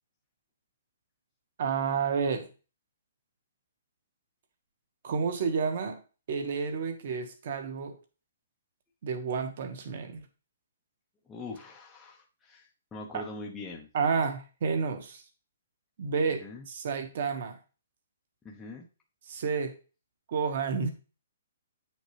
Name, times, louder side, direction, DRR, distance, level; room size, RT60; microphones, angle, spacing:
voice 1, 1.6-2.5 5.0-6.0 6.3-7.9 9.0-10.2 13.1-13.2 13.9-15.2 16.0-17.6 19.3-19.7 20.3-20.9, right 5 dB, 40° right, 6 dB, 1.5 m, -30 dB
voice 2, 11.3-13.9 16.4-16.6 18.4-18.9, left 3 dB, 5° left, -2 dB, 0.8 m, -42 dB
9.5 x 6.5 x 3.3 m, 0.34 s
hypercardioid pair, 175°, 0 cm